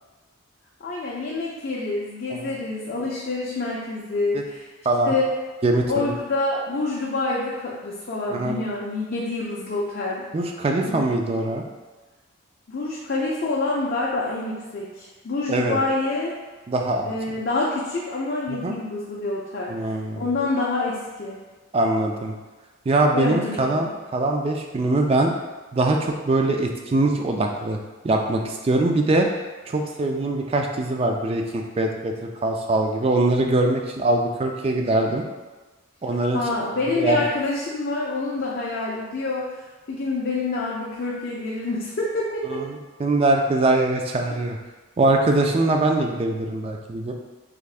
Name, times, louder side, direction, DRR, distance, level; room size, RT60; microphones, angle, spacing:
voice 1, 0.8-4.6 5.0-5.3 5.9-10.3 10.8-11.1 12.7-16.4 17.1-19.9 20.1-21.4 23.1-23.9 36.3-42.6, left 2 dB, 50° left, -5 dB, 0.5 m, -27 dB
voice 2, 4.9-5.2 5.6-6.1 8.3-8.6 10.3-11.6 15.5-15.8 16.7-17.1 18.5-18.8 19.7-20.2 21.7-22.3 22.9-25.3 25.7-27.8 28.0-29.3 29.7-32.1 32.4-35.2 36.0-36.4 37.0-37.2 42.5-44.6 45.0-47.1, right 2 dB, 30° right, 3 dB, 0.3 m, -22 dB
3.5 x 3.3 x 2.4 m, 1.3 s
head